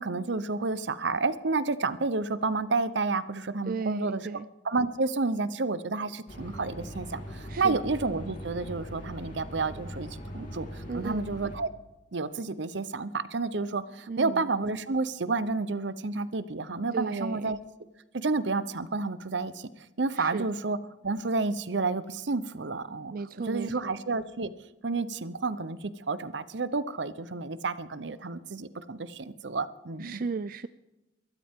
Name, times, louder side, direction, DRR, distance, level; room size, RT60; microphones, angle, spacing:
voice 1, 0.0-4.2 4.6-10.1 10.3-11.7 12.1-17.6 18.1-19.7 20.0-20.8 21.0-23.1 23.5-24.5 24.8-30.2, right 3 dB, 80° right, 14 dB, 0.9 m, -30 dB
voice 2, 3.7-4.5 7.5-7.8 10.9-11.3 14.1-14.4 16.9-17.6 20.2-20.5 23.1-24.0 30.0-30.7, right 4 dB, 50° right, 13 dB, 0.4 m, -35 dB
sound 1, 6.3-11.6, equal, 50° left, 3.1 m, -41 dB
22.5 x 13.0 x 3.7 m, 0.99 s
head